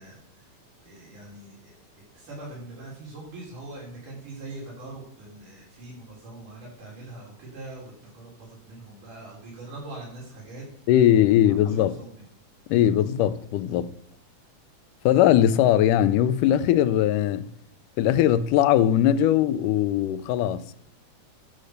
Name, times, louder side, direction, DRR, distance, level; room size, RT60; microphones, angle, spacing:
voice 1, 0.0-10.7 11.5-12.2, right 2 dB, 75° right, 5.6 m, -42 dB
voice 2, 10.9-11.9 12.7-13.9 15.1-17.5 18.0-20.6, left 11 dB, 90° left, 2.2 m, -20 dB
11.5 x 6.4 x 6.6 m
omnidirectional pair, 3.6 m